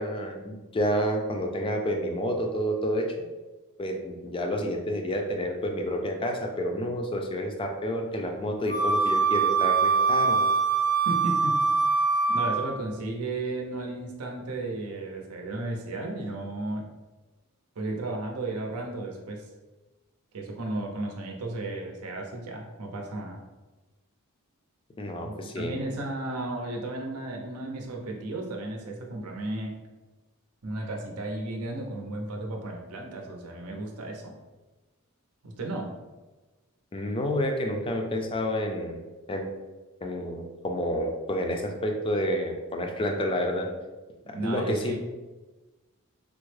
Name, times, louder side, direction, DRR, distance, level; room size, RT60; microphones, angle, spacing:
voice 1, 0.0-3.1 3.8-10.4 25.0-25.8 36.9-39.0 39.3-39.5 40.0-43.7 44.3-45.0, equal, 25° left, 3 dB, 0.4 m, -29 dB
Wind instrument woodwind instrument, 8.7-12.7, right 4 dB, 45° right, 0.6 m, -23 dB
voice 2, 11.1-11.6 12.3-16.9 17.8-19.5 20.3-23.4 25.2-29.8 30.6-34.4 35.4-35.9 44.2-45.0, right 2 dB, 80° right, 1 dB, 0.6 m, -34 dB
3.5 x 2.0 x 3.1 m, 1.2 s
head